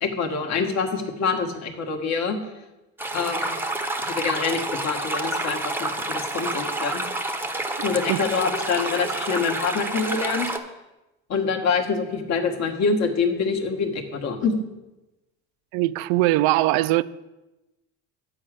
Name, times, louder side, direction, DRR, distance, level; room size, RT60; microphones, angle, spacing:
voice 1, 0.0-2.4 3.1-3.6 4.0-7.0 7.8-10.5 11.3-14.6, left 5 dB, 45° left, 1.6 m, -25 dB
sound 1, 3.0-10.6, right 2 dB, 5° right, 0.8 m, -29 dB
voice 2, 15.7-17.0, right 17 dB, 70° right, 0.5 m, -21 dB
8.8 x 5.0 x 7.5 m
supercardioid pair, 100°, 37 cm